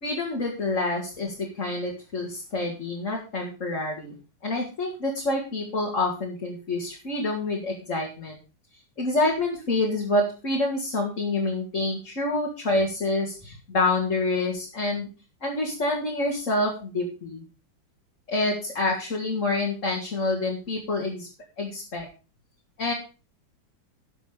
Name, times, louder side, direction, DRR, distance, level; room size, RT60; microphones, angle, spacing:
voice 1, 0.0-4.2 4.4-8.4 9.0-15.1 15.4-17.4 18.3-21.3 21.6-22.1 22.8-22.9, left 2 dB, 40° left, -2 dB, 2.6 m, -27 dB
12.0 x 7.3 x 5.1 m, 0.33 s
omnidirectional pair, 2.2 m